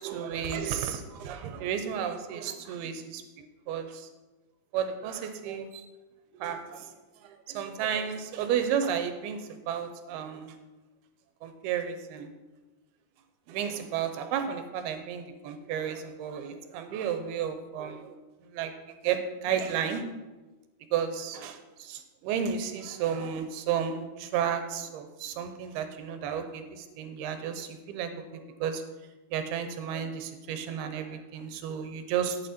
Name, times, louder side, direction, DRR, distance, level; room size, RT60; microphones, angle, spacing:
voice 1, 0.0-3.2 3.7-4.1 4.7-5.9 6.3-6.9 7.2-10.6 11.4-12.3 13.5-20.0 20.9-28.8 29.3-32.4, right 8 dB, 90° right, 8 dB, 2.8 m, -33 dB
11.0 x 8.8 x 4.3 m, 1.2 s
omnidirectional pair, 4.4 m